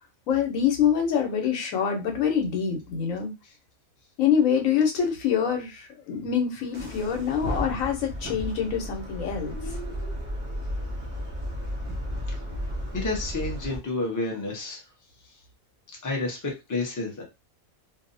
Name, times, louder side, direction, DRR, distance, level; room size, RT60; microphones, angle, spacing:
voice 1, 0.3-3.3 4.2-9.7, left 7 dB, 70° left, 3 dB, 1.1 m, -25 dB
sound 1, 6.7-13.8, equal, 50° right, 0.3 m, -33 dB
voice 2, 12.9-14.8 16.0-17.2, left 2 dB, 20° left, 0 dB, 0.5 m, -30 dB
2.7 x 2.0 x 2.5 m, 0.24 s
omnidirectional pair, 1.5 m